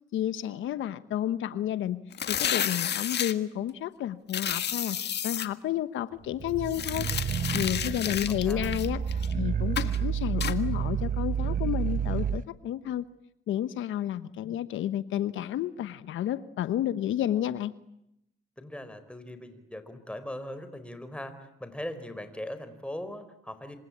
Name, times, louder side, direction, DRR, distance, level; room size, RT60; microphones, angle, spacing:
voice 1, 0.1-2.0 2.3-7.1 7.5-13.1 13.5-17.7, left 11 dB, 80° left, 13 dB, 1.1 m, -31 dB
sound 1, 2.1-3.3 4.3-5.5 6.7-9.3 9.8-10.0 10.4-10.6, left 9 dB, 60° left, 1.7 m, -31 dB
sound 2, 6.3-12.4, right 7 dB, 45° right, 1.3 m, -30 dB
voice 2, 7.8-8.2 8.4-8.7 18.6-23.8, left 1 dB, 5° left, 10 dB, 4.5 m, -40 dB
27.0 x 25.5 x 8.6 m, 0.82 s
cardioid pair, 90°, 20 cm